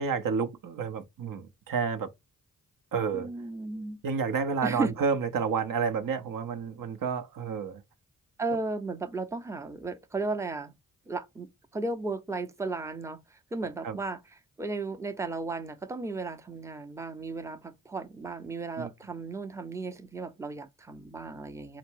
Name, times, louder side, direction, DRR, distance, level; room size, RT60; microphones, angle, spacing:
voice 1, 0.0-2.1 2.9-3.3 4.0-7.8 13.8-14.0 18.8-18.9, right 6 dB, 70° right, 0.7 m, -30 dB
voice 2, 3.1-4.0 4.6-4.9 8.4-10.7 11.1-21.8, right 3 dB, 10° right, 0.6 m, -35 dB
4.4 x 2.0 x 4.4 m
cardioid pair, 50°, 35 cm